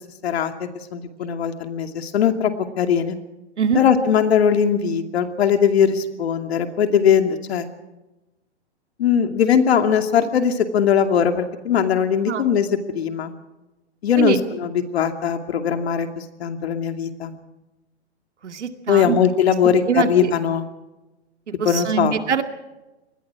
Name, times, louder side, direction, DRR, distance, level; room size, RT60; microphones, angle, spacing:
voice 1, 0.2-3.2 3.7-7.7 9.0-12.7 12.9-13.3 14.0-17.4 18.9-20.6 21.6-22.1, left 8 dB, 65° left, 6 dB, 2.5 m, -20 dB
voice 2, 18.4-19.2 19.9-20.3 21.5-22.4, right 7 dB, 90° right, 6 dB, 2.3 m, -23 dB
26.5 x 20.5 x 4.9 m, 1.0 s
hypercardioid pair, 150°, 34 cm